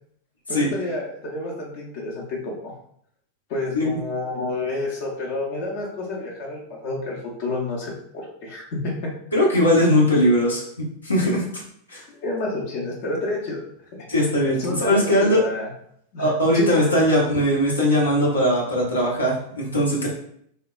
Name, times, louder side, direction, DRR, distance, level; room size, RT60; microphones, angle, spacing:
voice 1, 0.5-2.7 3.5-9.1 12.1-13.6 14.5-15.7 16.1-17.1, left 2 dB, 50° left, -3 dB, 0.7 m, -29 dB
voice 2, 9.3-10.6 11.0-11.4 11.9-12.0 14.1-15.4 16.2-20.1, equal, 80° left, -5 dB, 0.8 m, -19 dB
3.2 x 2.1 x 2.3 m, 0.66 s
figure-of-eight pair, 90°, 0 cm